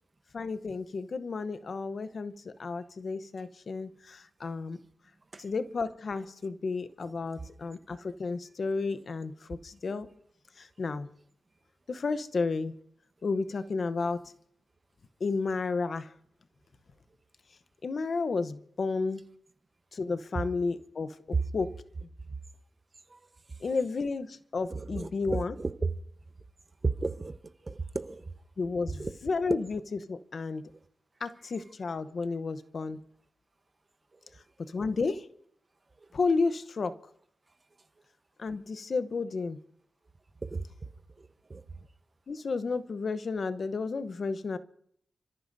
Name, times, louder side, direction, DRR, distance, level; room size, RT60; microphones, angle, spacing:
voice 1, 0.3-4.8 5.4-10.1 10.6-11.1 11.9-12.7 13.2-14.2 15.2-16.1 17.8-19.3 19.9-21.2 21.5-21.7 23.6-25.5 28.6-29.8 30.1-30.7 31.2-33.0 34.6-35.3 36.1-36.9 38.4-39.6 42.3-44.6, left 4 dB, 60° left, 12 dB, 0.8 m, -32 dB
voice 2, 24.7-25.9 26.8-27.3 27.6-28.3 29.0-29.1 40.4-40.9 41.2-41.6, right 3 dB, 35° right, 10 dB, 1.0 m, -33 dB
30.0 x 14.0 x 2.7 m, 0.66 s
wide cardioid pair, 85°, 0 cm